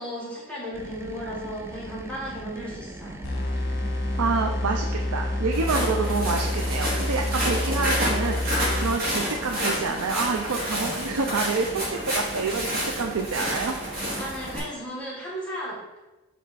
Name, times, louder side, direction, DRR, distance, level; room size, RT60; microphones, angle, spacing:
voice 1, 0.0-3.2 14.2-15.8, equal, 5° left, -5 dB, 1.4 m, -35 dB
sound 1, 0.7-14.6, right 2 dB, 10° right, 0.3 m, -40 dB
sound 2, 3.2-9.3, left 1 dB, 50° left, 1.0 m, -28 dB
voice 2, 4.2-13.8, right 4 dB, 90° right, 3 dB, 0.5 m, -28 dB
Walk footsteps, 5.5-14.6, equal, 45° right, 2.2 m, -29 dB
7.3 x 3.5 x 4.1 m, 1.1 s
head